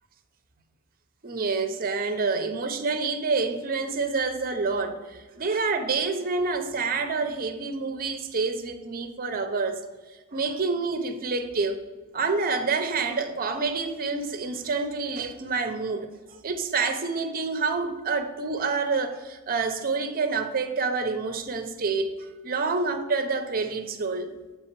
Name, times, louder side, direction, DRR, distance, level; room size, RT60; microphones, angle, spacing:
voice 1, 1.2-9.8 10.3-11.9 12.1-16.1 16.4-22.2 22.4-24.3, right 4 dB, 40° right, 7 dB, 0.6 m, -28 dB
7.7 x 3.5 x 4.5 m, 1.3 s
head